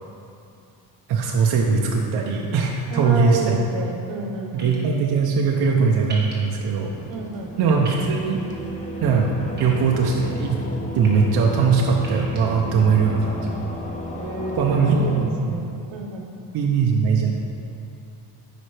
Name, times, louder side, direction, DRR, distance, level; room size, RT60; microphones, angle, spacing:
voice 1, 1.1-3.6 4.5-6.9 7.6-8.4 9.0-9.3 9.6-10.6 10.9-13.5 14.5-15.6 16.5-17.3, right 5 dB, 60° right, -1 dB, 0.6 m, -20 dB
voice 2, 2.9-4.7 7.1-7.6 12.6-13.5 14.1-16.3, right 3 dB, 80° right, 2 dB, 1.0 m, -30 dB
sound 1, 4.6-4.8 6.1-6.3 7.8-8.0 9.6-10.2 10.8-11.1 12.0-12.4, right 3 dB, 25° right, 1.1 m, -38 dB
sound 2, 6.7-15.2, left 1 dB, 20° left, 0.4 m, -33 dB
9.7 x 5.0 x 3.3 m, 2.7 s
cardioid pair, 180°, 44 cm